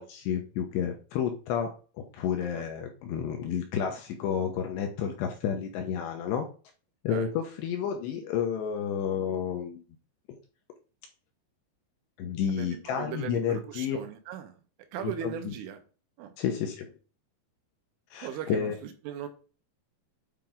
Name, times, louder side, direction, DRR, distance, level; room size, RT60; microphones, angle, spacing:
voice 1, 0.0-1.7 2.0-6.5 7.0-9.8 12.2-14.0 15.0-15.5 16.4-16.9 18.1-18.8, left 8 dB, 75° left, 4 dB, 2.7 m, -31 dB
voice 2, 12.5-14.6 14.9-15.8 16.2-16.3 18.2-19.3, right 10 dB, 80° right, 6 dB, 3.5 m, -38 dB
9.0 x 4.5 x 3.8 m, 0.36 s
omnidirectional pair, 5.7 m